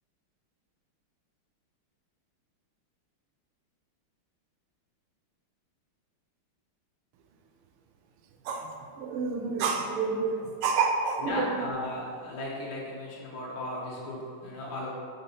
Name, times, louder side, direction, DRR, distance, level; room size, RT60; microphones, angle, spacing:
voice 1, 9.0-11.5, right 5 dB, 85° right, 5 dB, 1.5 m, -28 dB
voice 2, 11.2-14.9, left 1 dB, 80° left, -5 dB, 2.1 m, -36 dB
5.4 x 4.0 x 5.4 m, 2.1 s
omnidirectional pair, 2.4 m